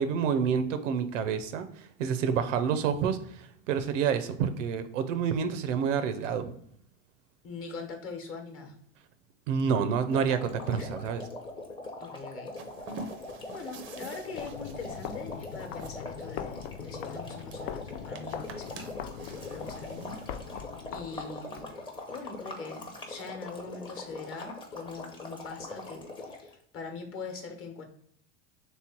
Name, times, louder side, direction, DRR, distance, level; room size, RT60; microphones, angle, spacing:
voice 1, 0.0-6.5 9.5-11.2, right 7 dB, 80° right, 10 dB, 0.6 m, -28 dB
voice 2, 7.4-8.7 10.7-10.9 12.0-12.5 12.9-13.0 13.5-20.6 20.9-21.8 22.1-27.8, left 4 dB, 35° left, 4 dB, 1.0 m, -42 dB
sound 1, 10.1-26.5, left 2 dB, 15° left, 0.7 m, -42 dB
sound 2, 12.6-20.7, right 4 dB, 35° right, 0.5 m, -48 dB
sound 3, 14.3-21.7, left 9 dB, 55° left, 0.5 m, -42 dB
3.3 x 3.1 x 4.3 m, 0.68 s
supercardioid pair, 115°, 37 cm